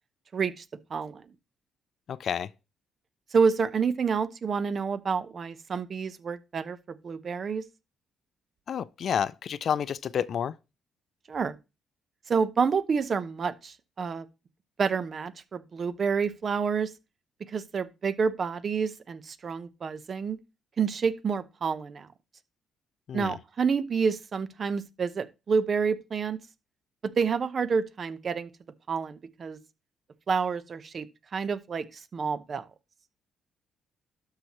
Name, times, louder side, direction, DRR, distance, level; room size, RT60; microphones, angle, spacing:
voice 1, 0.3-0.6 0.9-1.2 3.3-7.6 11.3-11.5 12.3-14.2 14.8-16.9 17.5-20.4 20.8-22.1 23.1-26.4 27.0-28.5 28.9-29.6 30.3-31.1 31.3-31.8 32.1-32.6, right 5 dB, 45° right, 0.9 m, -28 dB
voice 2, 2.1-2.5 8.7-10.5 23.1-23.3, left 8 dB, 60° left, 0.4 m, -29 dB
12.5 x 5.7 x 3.0 m
cardioid pair, 90°, 0 cm